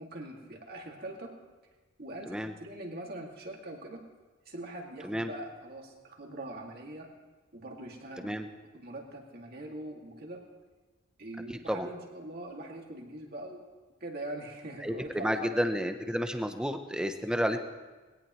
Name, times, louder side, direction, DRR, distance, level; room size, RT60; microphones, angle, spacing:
voice 1, 0.0-1.4 2.0-4.1 4.5-7.1 7.5-8.3 8.7-10.5 11.2-13.7 14.0-15.7, right 1 dB, 50° right, 0 dB, 2.4 m, -42 dB
voice 2, 11.5-11.9 14.8-17.6, equal, 5° right, 7 dB, 0.8 m, -31 dB
21.0 x 17.5 x 3.2 m, 1.3 s
head